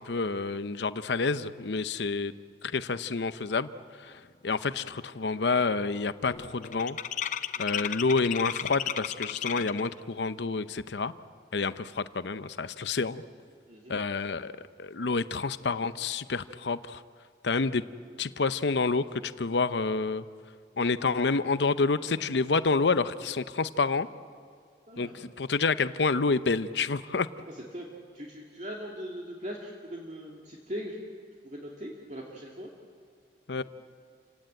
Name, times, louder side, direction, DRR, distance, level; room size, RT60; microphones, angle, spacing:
voice 1, 0.0-2.3 2.6-3.7 4.4-7.0 7.6-11.1 11.5-13.2 13.9-14.5 14.8-17.0 17.4-17.8 18.2-20.2 20.8-24.1 25.0-27.3 33.5-33.6, left 4 dB, 80° left, 13 dB, 0.7 m, -28 dB
sound 1, 4.2-4.3 4.7-5.0 5.3-9.9, left 9 dB, 45° left, 0.6 m, -35 dB
voice 2, 13.7-14.0 24.9-25.2 27.7-27.9 28.1-31.0 31.4-32.7, equal, 40° right, -2 dB, 2.3 m, -40 dB
29.0 x 17.0 x 8.9 m, 2.1 s
head